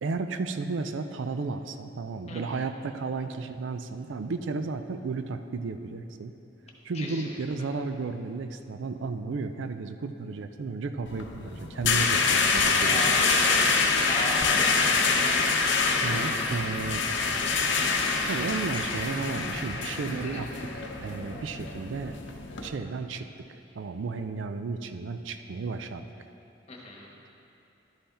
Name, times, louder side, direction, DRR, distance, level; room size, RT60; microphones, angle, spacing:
voice 1, 0.0-6.3 6.8-13.1 16.0-17.0 18.3-20.7 21.0-22.1 22.6-23.3 23.8-26.1, right 4 dB, 75° right, 9 dB, 0.4 m, -33 dB
voice 2, 6.9-7.4 12.9-13.8 14.1-15.3 20.2-20.4 26.7-27.1, left 2 dB, 35° left, -2 dB, 1.2 m, -36 dB
sound 1, 11.1-22.7, left 4 dB, 65° left, 0.7 m, -26 dB
11.5 x 5.6 x 4.3 m, 2.8 s
head